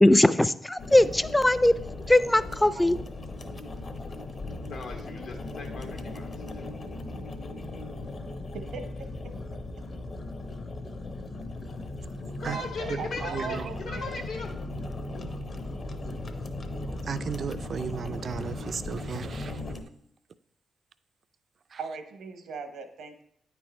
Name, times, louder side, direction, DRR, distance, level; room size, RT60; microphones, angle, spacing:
voice 1, 0.0-1.7 2.1-3.0, left 1 dB, 10° left, 0.4 m, -20 dB
sound 1, 0.8-19.8, left 2 dB, 50° left, 0.8 m, -37 dB
voice 2, 4.7-6.6 12.4-14.5, left 3 dB, 85° left, 1.5 m, -38 dB
voice 3, 8.5-9.1 12.4-14.1 21.8-23.2, right 5 dB, 85° right, 0.9 m, -39 dB
voice 4, 13.3-13.7 17.0-19.6 21.7-21.8, right 6 dB, 55° right, 0.4 m, -35 dB
8.9 x 4.6 x 4.2 m
cardioid pair, 80°, 0 cm